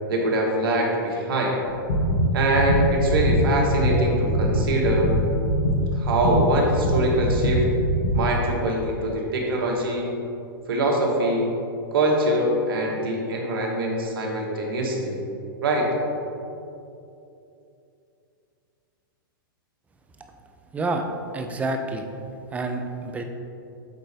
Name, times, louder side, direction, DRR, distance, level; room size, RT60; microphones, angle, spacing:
voice 1, 0.1-1.6 2.3-5.1 5.9-7.7 8.1-10.1 10.7-11.5 11.9-15.1 15.6-15.9, right 1 dB, 80° right, 0 dB, 1.3 m, -23 dB
sound 1, 1.7-8.2, equal, 80° left, 1.2 m, -22 dB
voice 2, 20.7-21.0 21.3-22.1 22.5-23.2, right 2 dB, 10° right, 5 dB, 0.4 m, -28 dB
8.0 x 3.8 x 3.3 m, 2.7 s
hypercardioid pair, 135°, 12 cm